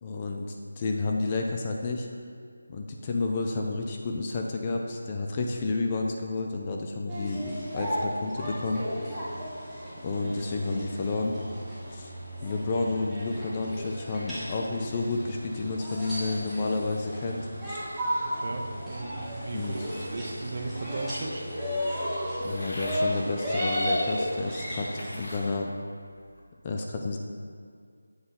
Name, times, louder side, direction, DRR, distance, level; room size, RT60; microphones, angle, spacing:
voice 1, 0.0-2.1 2.7-8.8 10.0-11.4 11.9-12.1 12.4-17.4 17.7-17.8 19.5-19.7 22.4-24.9 25.1-25.7 26.6-27.2, left 3 dB, 25° left, 1 dB, 0.4 m, -30 dB
sound 1, 7.1-25.5, equal, ahead, 1.1 m, -34 dB
voice 2, 18.1-21.5 24.7-24.9, right 2 dB, 45° right, 2 dB, 0.7 m, -37 dB
sound 2, 22.4-23.1 23.9-24.0 24.6-25.5 26.0-26.4, left 1 dB, 65° left, 1.2 m, -42 dB
7.8 x 3.9 x 4.2 m, 2.1 s
figure-of-eight pair, 170°, 0 cm